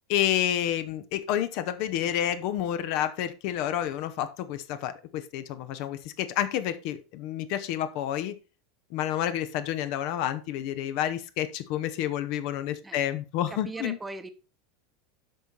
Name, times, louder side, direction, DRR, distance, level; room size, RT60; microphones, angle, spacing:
voice 1, 0.1-8.3 8.9-14.0, left 11 dB, 50° left, 11 dB, 0.7 m, -29 dB
voice 2, 13.5-14.3, right 3 dB, 10° right, 10 dB, 0.9 m, -38 dB
8.2 x 5.8 x 4.2 m, 0.32 s
figure-of-eight pair, 80°, 0 cm